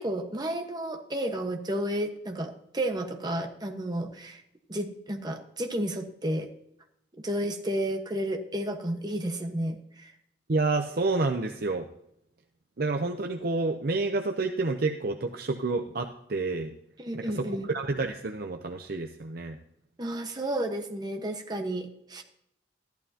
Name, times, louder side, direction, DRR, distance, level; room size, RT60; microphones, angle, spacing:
voice 1, 0.0-4.4 4.7-6.5 7.2-10.1 17.0-17.7 20.0-22.2, right 1 dB, 25° right, 4 dB, 1.3 m, -32 dB
voice 2, 10.5-11.9 12.8-16.7 17.2-19.6, right 3 dB, 60° right, 4 dB, 0.7 m, -29 dB
14.0 x 11.5 x 2.9 m, 0.76 s
head